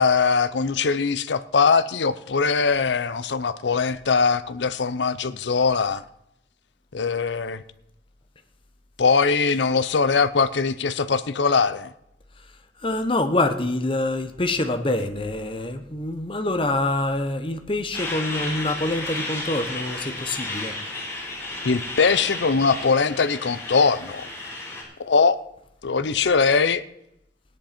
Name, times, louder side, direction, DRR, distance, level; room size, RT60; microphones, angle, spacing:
voice 1, 0.0-6.0 6.9-7.6 9.0-11.9 21.6-24.3 25.0-25.4 25.8-26.8, left 5 dB, 85° left, 0.6 m, -21 dB
voice 2, 12.8-20.7, left 2 dB, 30° left, 1.0 m, -25 dB
Truck, 17.9-24.8, left 2 dB, 15° left, 4.1 m, -33 dB
17.0 x 10.0 x 4.4 m
head